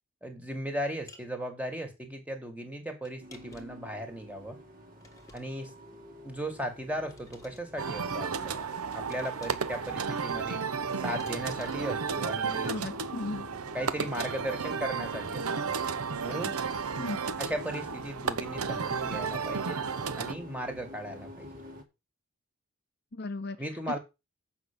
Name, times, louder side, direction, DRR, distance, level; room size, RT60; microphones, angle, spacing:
voice 1, 0.2-4.6 5.3-5.7 6.2-10.6 11.0-12.8 13.7-15.5 16.2-16.6 17.4-19.8 20.2-21.5 23.6-24.0, equal, 5° right, 1.9 m, -37 dB
sound 1, 1.1-1.3 3.0-3.9 5.0-5.8 7.1-7.6 9.1-9.8 11.2-12.0, left 3 dB, 15° left, 1.5 m, -54 dB
sound 2, 3.2-21.8, left 1 dB, 40° right, 1.9 m, -49 dB
sound 3, 7.8-20.3, right 5 dB, 85° right, 0.9 m, -33 dB
voice 2, 12.7-13.5 17.0-17.4 23.1-23.6, left 2 dB, 45° left, 0.7 m, -36 dB
8.1 x 5.8 x 6.8 m
head